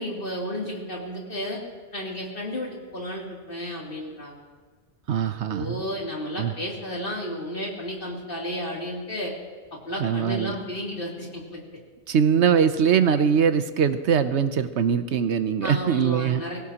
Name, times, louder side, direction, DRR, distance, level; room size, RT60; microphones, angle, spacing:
voice 1, 0.0-1.6 1.9-4.3 5.5-9.3 9.7-11.6 15.6-16.6, equal, 45° left, -3 dB, 3.1 m, -32 dB
voice 2, 5.1-5.8 6.4-6.5 10.0-10.5 12.1-16.4, right 7 dB, 70° right, 10 dB, 1.0 m, -22 dB
22.0 x 17.0 x 2.9 m, 1.5 s
omnidirectional pair, 1.2 m